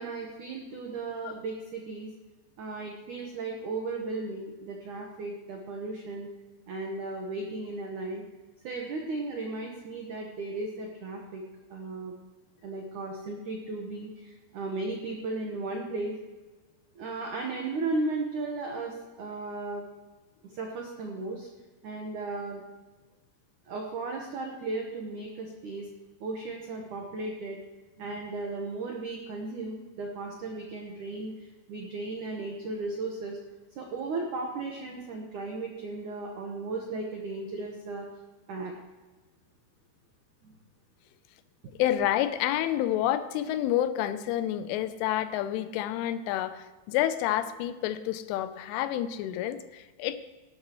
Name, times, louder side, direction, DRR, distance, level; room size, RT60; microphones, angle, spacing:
voice 1, 0.0-2.1 2.6-6.3 6.7-8.2 8.6-11.4 11.7-12.1 12.6-16.1 17.0-19.8 20.4-21.5 21.8-22.6 23.7-25.9 26.2-27.6 28.0-33.4 33.8-38.1 38.5-38.7 40.4-40.5, right 3 dB, 85° right, 0 dB, 1.7 m, -35 dB
voice 2, 41.8-50.2, left 12 dB, 85° left, 12 dB, 3.1 m, -29 dB
17.0 x 12.0 x 3.1 m, 1.2 s
omnidirectional pair, 5.6 m